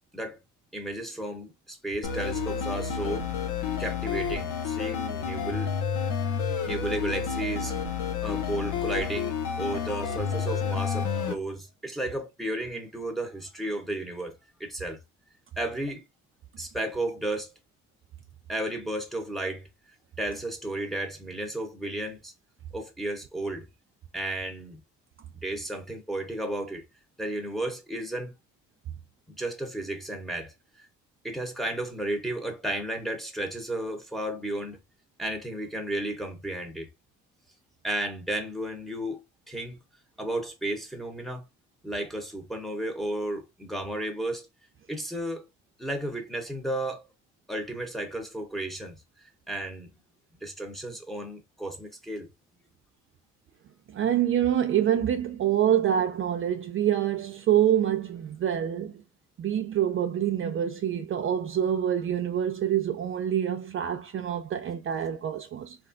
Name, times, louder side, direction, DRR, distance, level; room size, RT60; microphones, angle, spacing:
voice 1, 0.7-3.3 3.8-5.7 6.6-7.7 8.2-14.3 14.6-15.0 15.6-16.0 16.6-17.5 18.5-19.7 20.2-22.3 22.7-23.6 24.1-24.8 25.3-26.8 27.2-28.3 29.3-30.9 31.2-34.8 35.2-36.9 37.8-39.8 40.2-41.4 41.8-44.5 44.9-45.5 45.8-47.1 47.5-49.0 49.5-49.9 50.4-52.3, right 1 dB, ahead, 0.8 m, -33 dB
sound 1, 2.0-11.3, left 6 dB, 85° left, 0.7 m, -30 dB
voice 2, 53.9-58.9 59.4-65.8, right 10 dB, 45° right, 0.4 m, -26 dB
3.2 x 2.4 x 2.5 m
cardioid pair, 90°, 30 cm